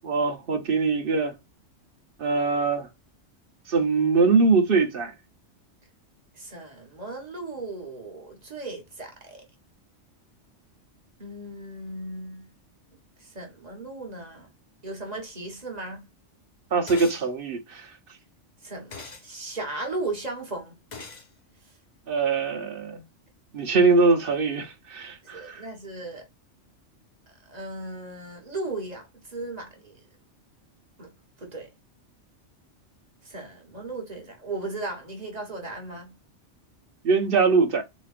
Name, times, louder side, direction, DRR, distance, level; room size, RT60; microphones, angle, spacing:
voice 1, 0.0-1.3 2.2-2.9 3.7-5.1 16.7-17.9 22.1-23.0 23.5-25.6 37.0-37.8, right 4 dB, 50° right, 0.9 m, -22 dB
voice 2, 6.3-9.4 11.2-12.5 13.2-14.5 14.8-16.1 18.6-20.7 25.3-26.3 27.5-30.0 31.0-31.1 31.4-31.7 33.2-36.1, right 2 dB, 35° right, 1.3 m, -36 dB
sound 1, 16.9-17.2 18.9-19.3 20.9-21.3, left 4 dB, 40° left, 0.9 m, -40 dB
4.1 x 3.0 x 2.4 m
omnidirectional pair, 1.3 m